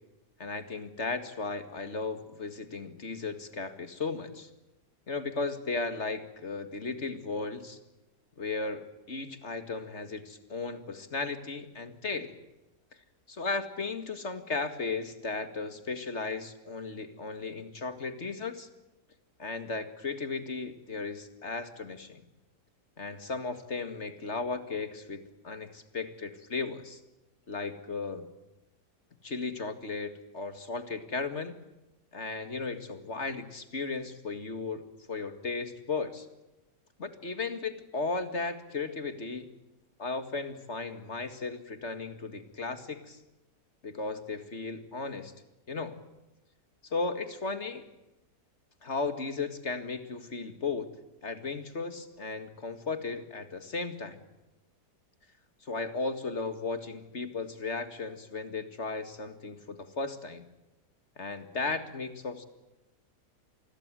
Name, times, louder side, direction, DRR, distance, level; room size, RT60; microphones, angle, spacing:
voice 1, 0.4-4.5 5.1-7.8 8.4-12.4 13.3-18.7 19.4-22.2 23.0-27.0 27.5-28.3 29.2-31.6 32.1-34.8 35.1-36.3 37.0-39.5 40.0-43.2 43.8-45.3 45.7-46.0 46.8-47.9 48.8-50.9 51.2-54.2 55.6-60.4 61.2-62.4, left 4 dB, 40° left, 10 dB, 2.3 m, -35 dB
27.5 x 21.0 x 7.6 m, 0.96 s
omnidirectional pair, 1.8 m